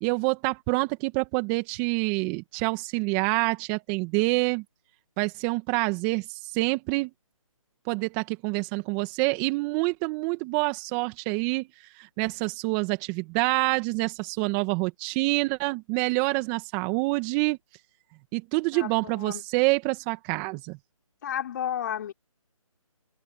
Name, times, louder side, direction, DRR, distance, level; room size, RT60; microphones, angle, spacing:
voice 1, 0.0-4.6 5.2-7.1 7.9-17.6 18.3-20.8, right 26 dB, 15° right, 1.9 m, -27 dB
voice 2, 18.7-19.4 21.2-22.1, left 9 dB, 35° left, 4.6 m, -32 dB
figure-of-eight pair, 155°, 18 cm